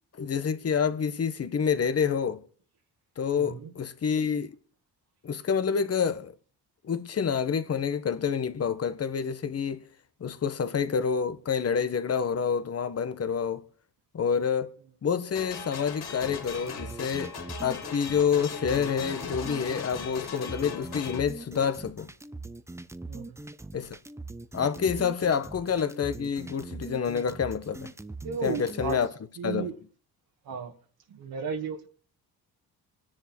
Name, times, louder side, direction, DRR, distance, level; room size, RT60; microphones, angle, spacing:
voice 1, 0.1-2.4 3.2-4.5 5.2-6.3 6.8-9.8 10.2-13.6 14.1-22.1 23.7-24.0 24.5-27.9 28.4-29.1 29.4-29.7, left 6 dB, 40° left, 1.5 m, -28 dB
voice 2, 3.3-3.7 23.1-23.3 28.2-29.0 29.4-29.7 30.5-30.7 31.1-31.9, right 5 dB, 65° right, 2.2 m, -34 dB
sound 1, 15.3-21.2, left 6 dB, 70° left, 3.3 m, -39 dB
sound 2, 16.2-29.1, right 2 dB, 5° right, 0.7 m, -42 dB
26.5 x 10.5 x 4.5 m
cardioid pair, 125°, 39 cm